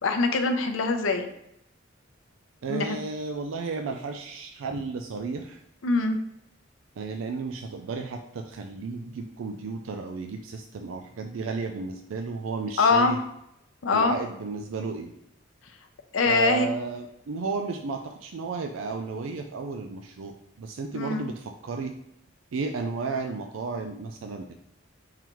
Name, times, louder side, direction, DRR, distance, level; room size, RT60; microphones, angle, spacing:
voice 1, 0.0-1.2 2.7-3.0 5.8-6.2 12.8-13.1 13.8-14.2 16.1-16.7 20.9-21.3, left 3 dB, 80° left, 5 dB, 0.6 m, -23 dB
voice 2, 2.6-5.6 7.0-13.2 13.9-15.1 16.3-21.9 22.5-24.5, right 4 dB, 85° right, 5 dB, 0.4 m, -33 dB
4.5 x 3.9 x 3.0 m, 0.79 s
head